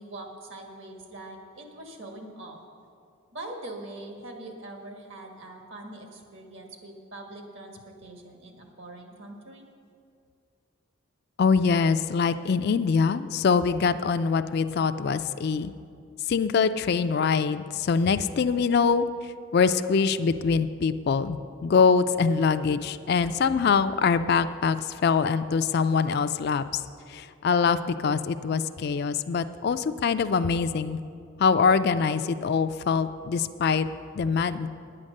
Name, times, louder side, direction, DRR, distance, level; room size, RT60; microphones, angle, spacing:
voice 1, 0.0-2.6 3.3-9.7, right 2 dB, 65° right, 2 dB, 1.6 m, -42 dB
voice 2, 11.4-15.7 16.3-26.6 27.1-31.0 31.4-33.9 34.1-34.7, left 5 dB, 50° left, 11 dB, 0.3 m, -24 dB
9.8 x 8.7 x 6.5 m, 2.4 s
head